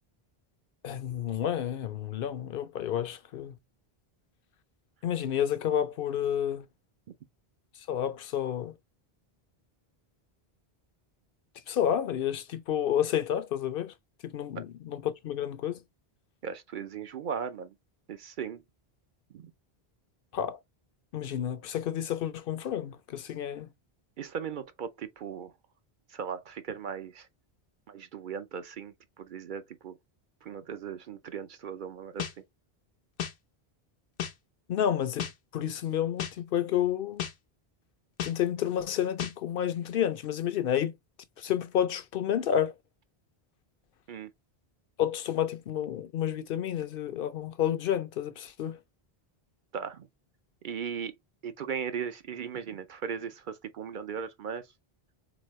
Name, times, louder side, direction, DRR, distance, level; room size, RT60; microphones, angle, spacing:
voice 1, 0.8-3.5 5.0-6.7 7.9-8.8 11.7-13.9 14.2-15.8 20.3-20.6 21.1-23.7 34.7-37.2 38.2-40.9 41.4-42.8 45.0-48.8, left 10 dB, 65° left, 0.7 m, -30 dB
voice 2, 16.4-17.7 18.1-18.6 19.3-19.5 24.2-25.5 26.1-27.3 27.9-30.0 30.4-32.3 44.1-44.3 49.7-50.1 50.6-51.1 51.4-54.6, right 7 dB, 60° right, 0.7 m, -37 dB
sound 1, 32.2-32.3 33.2-33.3 34.2-34.3 35.2-35.3 36.2-36.3 37.2-37.3 38.2-38.3 39.2-39.3, left 9 dB, 90° left, 1.0 m, -33 dB
4.1 x 3.5 x 3.0 m
omnidirectional pair, 1.0 m